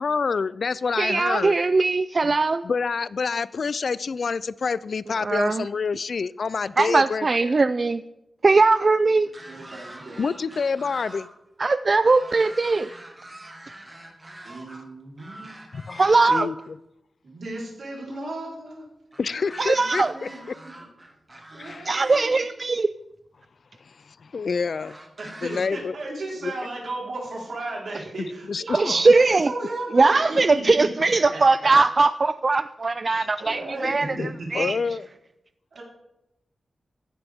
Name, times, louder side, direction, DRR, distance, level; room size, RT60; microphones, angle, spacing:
voice 1, 0.0-1.6 2.2-2.3 2.6-7.6 10.2-11.3 15.7-16.8 19.2-20.3 21.6-21.9 24.1-25.0 25.4-26.0 26.4-26.5 28.2-29.1 33.1-33.3 34.1-35.1, left 5 dB, 65° left, 0.4 m, -28 dB
voice 2, 1.0-2.6 5.2-5.6 6.8-8.0 8.4-9.3 11.6-12.9 16.0-16.5 19.6-20.1 21.9-22.9 28.7-29.5 29.9-34.1 34.5-34.8, right 3 dB, 40° right, 0.3 m, -20 dB
voice 3, 9.1-10.2 14.4-15.5 17.2-18.9 19.9-20.9 21.5-22.4 25.2-29.0 29.2-31.7 33.0-33.9 34.2-34.5 35.7-35.8, right 2 dB, 75° right, 4.1 m, -35 dB
sound 1, 9.3-11.3 11.6-14.8 15.2-16.7 19.1-22.2 23.2-23.3 24.7-25.6, right 1 dB, 25° right, 2.1 m, -44 dB
15.0 x 11.0 x 3.6 m
wide cardioid pair, 100°, 0 cm